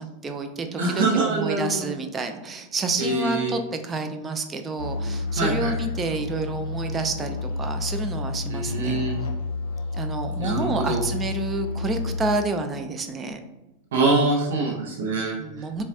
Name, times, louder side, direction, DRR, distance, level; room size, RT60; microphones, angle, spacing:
voice 1, 0.0-9.1 9.9-13.4 15.4-15.8, right 3 dB, 20° right, 6 dB, 0.3 m, -29 dB
voice 2, 0.8-1.9 3.0-3.5 5.4-5.7 8.5-9.1 10.4-11.0 13.9-15.4, right 3 dB, 60° right, -2 dB, 0.6 m, -24 dB
sound 1, 4.8-12.4, left 3 dB, 60° left, 0.4 m, -30 dB
4.0 x 2.2 x 2.4 m, 1.0 s
figure-of-eight pair, 90°, 0 cm